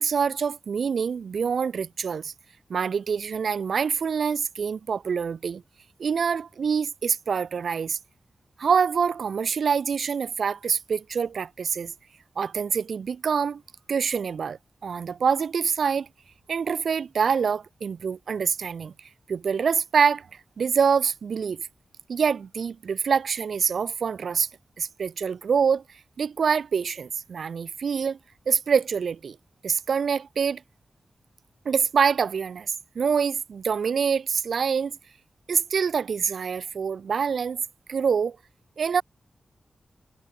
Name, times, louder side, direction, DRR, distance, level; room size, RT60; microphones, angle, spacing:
voice 1, 0.0-2.3 2.7-5.6 6.0-8.0 8.6-11.9 12.4-13.6 13.9-16.1 16.5-18.9 19.3-20.3 20.6-21.7 22.1-24.5 24.8-25.8 26.2-28.2 28.5-29.4 29.6-30.6 31.6-35.0 35.5-37.6 37.9-38.4 38.8-39.0, right 6 dB, 85° right, 2.6 m, -25 dB
wide cardioid pair, 120°, 0 cm